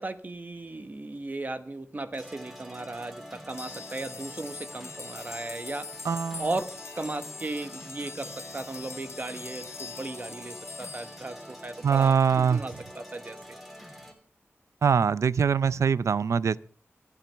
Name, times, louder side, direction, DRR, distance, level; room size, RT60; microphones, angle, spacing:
voice 1, 0.0-5.9 6.4-13.6, right 2 dB, 35° right, 9 dB, 1.3 m, -36 dB
sound 1, 2.1-14.1, equal, 5° right, 3.2 m, -46 dB
sound 2, 3.5-12.0, left 5 dB, 60° left, 0.7 m, -43 dB
voice 2, 6.0-6.5 11.8-12.6 14.8-16.6, right 6 dB, 75° right, 18 dB, 0.5 m, -23 dB
26.5 x 9.2 x 3.5 m, 0.43 s
wide cardioid pair, 90°, 5 cm